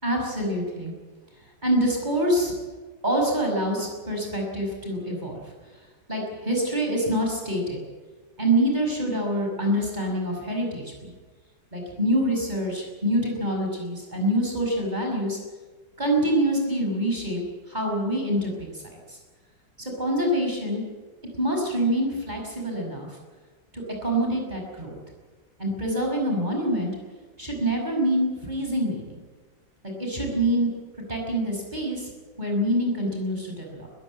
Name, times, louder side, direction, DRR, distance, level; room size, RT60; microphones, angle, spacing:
voice 1, 0.0-0.9 1.6-2.5 3.0-5.4 6.1-7.8 8.4-11.1 11.7-15.4 16.0-18.7 19.8-20.8 21.4-23.1 23.7-25.0 25.6-26.9 27.4-29.2 29.8-30.7 31.1-32.1 32.4-33.9, right 1 dB, 20° right, 0 dB, 5.9 m, -26 dB
20.5 x 15.0 x 9.4 m, 1.4 s
omnidirectional pair, 2.1 m